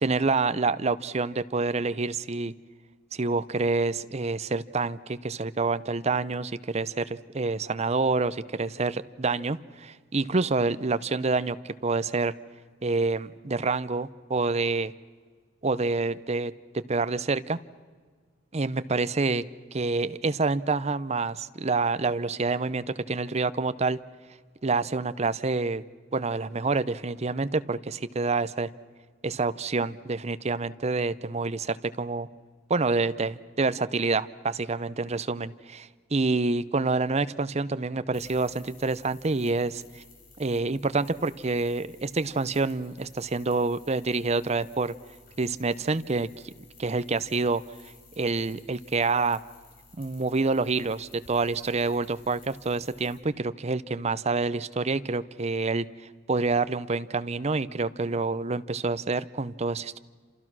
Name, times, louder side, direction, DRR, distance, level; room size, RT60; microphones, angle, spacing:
voice 1, 0.0-2.5 3.1-12.3 12.8-14.9 15.6-17.6 18.5-19.4 19.7-24.0 24.6-25.8 26.1-28.7 29.2-32.3 32.7-40.0 40.4-44.9 45.4-46.5 46.8-49.4 50.0-55.9 56.3-60.0, right 3 dB, 35° right, 14 dB, 0.7 m, -27 dB
sound 1, 38.1-53.2, left 3 dB, 45° left, 4.7 m, -55 dB
28.5 x 27.5 x 6.2 m, 1.5 s
head